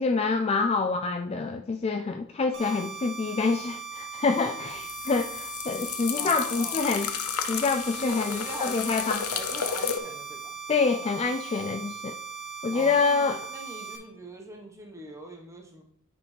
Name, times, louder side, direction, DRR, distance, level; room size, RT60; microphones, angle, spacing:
voice 1, 0.0-7.1 7.5-9.3 10.7-12.2 12.6-13.4, left 4 dB, 30° left, 0.3 m, -26 dB
sound 1, 2.5-14.0, right 6 dB, 55° right, 1.1 m, -39 dB
sound 2, 4.7-10.0, left 8 dB, 80° left, 0.7 m, -33 dB
voice 2, 6.1-6.9 7.9-10.6 12.7-15.8, right 1 dB, 15° right, 1.1 m, -42 dB
9.4 x 5.3 x 3.2 m
head